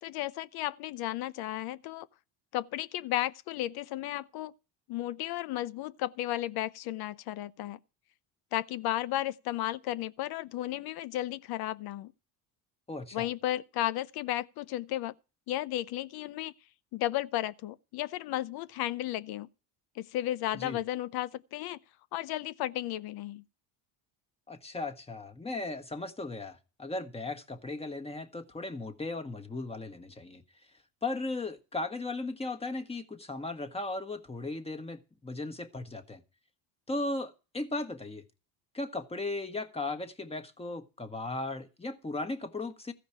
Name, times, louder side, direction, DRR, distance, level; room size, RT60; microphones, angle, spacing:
voice 1, 0.0-2.1 2.5-4.5 4.9-7.8 8.5-12.1 13.1-15.1 15.5-16.5 16.9-19.5 20.0-21.8 22.1-23.4, left 14 dB, 65° left, 0.8 m, -34 dB
voice 2, 12.9-13.3 20.5-20.8 24.5-30.4 31.0-36.2 36.9-38.2 38.7-42.9, left 2 dB, 15° left, 1.4 m, -37 dB
14.5 x 5.1 x 8.7 m
cardioid pair, 110°, 40 cm